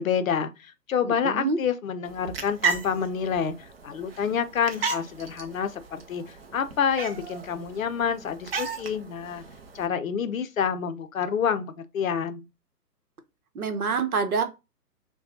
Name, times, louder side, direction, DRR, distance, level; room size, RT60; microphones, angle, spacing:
voice 1, 0.0-3.6 3.8-9.4 9.7-12.4, left 7 dB, 55° left, 0.6 m, -28 dB
voice 2, 1.0-1.6 13.5-14.4, right 4 dB, 60° right, 0.9 m, -26 dB
sound 1, 2.0-9.9, right 5 dB, 40° right, 0.6 m, -35 dB
6.6 x 2.2 x 2.7 m
figure-of-eight pair, 125°, 49 cm